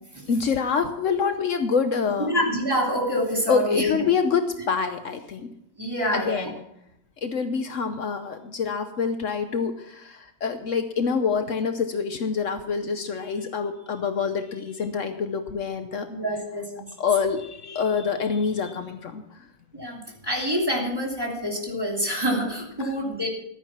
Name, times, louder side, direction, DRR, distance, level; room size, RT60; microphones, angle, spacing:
voice 1, 0.3-2.3 3.5-5.5 6.1-6.5 7.2-16.1 17.0-19.5 22.8-22.9, left 5 dB, 65° left, 8 dB, 1.2 m, -26 dB
voice 2, 2.3-4.1 5.8-6.5 16.1-16.9 19.7-20.0 20.2-23.3, equal, 15° right, -1 dB, 2.9 m, -26 dB
13.0 x 9.6 x 6.0 m, 0.80 s
omnidirectional pair, 1.5 m